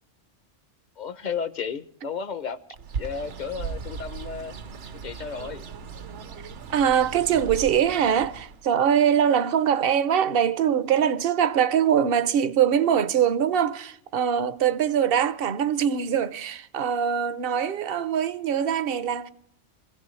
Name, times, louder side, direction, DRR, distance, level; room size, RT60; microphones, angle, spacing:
voice 1, 1.0-2.6 2.9-4.5 5.0-5.6, left 6 dB, 40° left, 0.9 m, -33 dB
Bird, 2.8-8.7, right 5 dB, 75° right, 1.2 m, -37 dB
voice 2, 6.7-19.3, right 8 dB, 55° right, 0.9 m, -23 dB
26.0 x 16.0 x 3.2 m
omnidirectional pair, 1.2 m